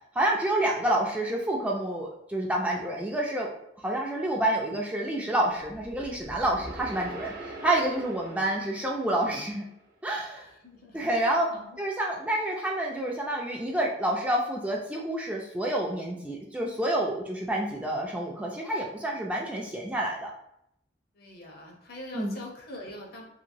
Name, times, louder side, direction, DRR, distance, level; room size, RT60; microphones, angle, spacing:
voice 1, 0.1-3.5 3.8-7.3 7.6-9.7 10.0-10.5 10.9-11.5 11.8-20.3 22.1-22.4, right 1 dB, 10° right, -2 dB, 0.3 m, -28 dB
sound 1, 5.6-9.9, right 1 dB, 55° right, 0.6 m, -43 dB
voice 2, 10.3-11.8 21.1-23.2, left 1 dB, 55° left, 0 dB, 0.7 m, -44 dB
2.9 x 2.6 x 2.6 m, 0.76 s
head